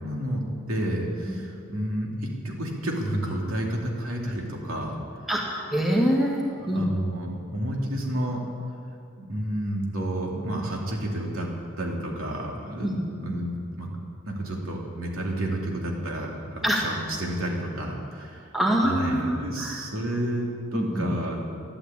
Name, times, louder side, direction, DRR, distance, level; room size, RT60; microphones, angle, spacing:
voice 1, 0.0-5.0 6.4-8.4 9.2-11.5 11.8-13.9 14.3-18.5 18.8-21.6, right 1 dB, 90° right, -1 dB, 2.7 m, -30 dB
voice 2, 5.3-6.9 12.8-13.0 16.6-16.8 18.5-19.8 20.7-21.1, equal, ahead, -3 dB, 2.0 m, -25 dB
12.5 x 11.5 x 8.7 m, 2.4 s
head